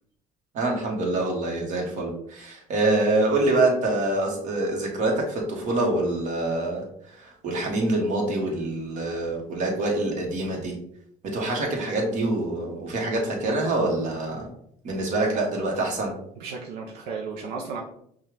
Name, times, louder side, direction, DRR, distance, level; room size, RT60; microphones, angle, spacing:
voice 1, 0.5-10.8 11.2-14.5 14.8-16.1, right 2 dB, 55° right, 0 dB, 1.4 m, -25 dB
voice 2, 16.4-17.8, right 5 dB, 85° right, 0 dB, 0.6 m, -34 dB
5.4 x 2.4 x 3.2 m, 0.69 s
cardioid pair, 125°, 16 cm